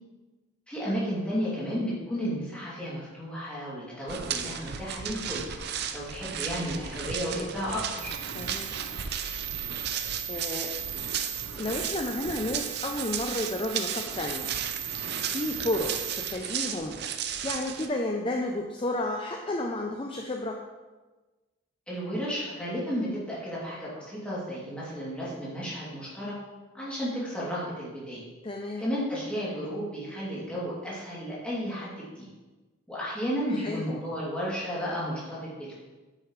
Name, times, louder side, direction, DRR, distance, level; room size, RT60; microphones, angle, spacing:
voice 1, 0.7-5.5 5.9-8.2 21.9-26.3 26.7-28.2 28.8-32.3 32.9-35.7, equal, 5° left, -8 dB, 2.9 m, -33 dB
sound 1, 4.1-17.9, right 7 dB, 50° right, 0.6 m, -35 dB
sound 2, 8.0-16.3, right 13 dB, 30° right, 1.0 m, -38 dB
voice 2, 8.3-8.8 10.3-10.8 11.6-14.5 15.2-17.0 17.4-20.7 28.4-28.8 33.5-33.9, left 1 dB, 25° left, 2 dB, 0.5 m, -32 dB
9.3 x 8.1 x 3.3 m, 1.2 s
head